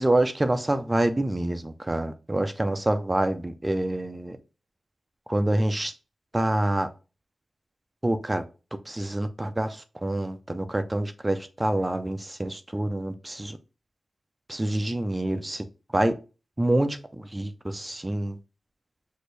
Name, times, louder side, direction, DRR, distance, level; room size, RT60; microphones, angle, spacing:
voice 1, 0.0-4.4 5.3-5.9 6.3-6.9 8.0-8.4 8.9-13.6 14.5-15.6 15.9-16.1 16.6-18.4, right 1 dB, 15° right, 0.6 m, -26 dB
6.3 x 2.6 x 3.2 m
wide cardioid pair, 120°, 0 cm